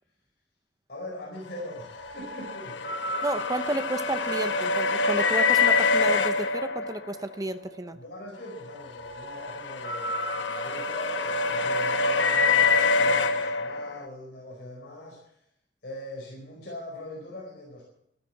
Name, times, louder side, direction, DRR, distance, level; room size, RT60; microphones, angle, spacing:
voice 1, 0.9-3.2 7.9-15.4 15.8-17.8, left 1 dB, 65° left, -2 dB, 4.7 m, -42 dB
sound 1, 1.7-7.3 8.7-14.0, left 4 dB, 85° left, 1.1 m, -25 dB
voice 2, 3.2-8.0, right 1 dB, 20° right, 9 dB, 0.7 m, -32 dB
13.0 x 13.0 x 7.4 m, 0.77 s
head